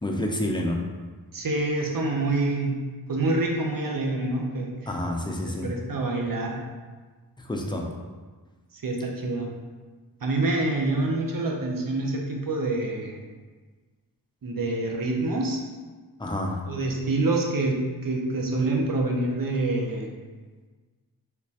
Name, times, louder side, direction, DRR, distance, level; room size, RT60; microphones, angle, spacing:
voice 1, 0.0-0.8 4.9-5.7 7.4-7.9 16.2-16.6, left 1 dB, 10° left, 0 dB, 0.5 m, -28 dB
voice 2, 1.3-2.7 3.1-4.7 5.6-6.6 8.8-9.5 10.2-13.2 14.4-15.6 16.7-20.1, right 2 dB, 55° right, 0 dB, 0.7 m, -26 dB
3.3 x 3.0 x 2.8 m, 1.4 s
wide cardioid pair, 45°, 41 cm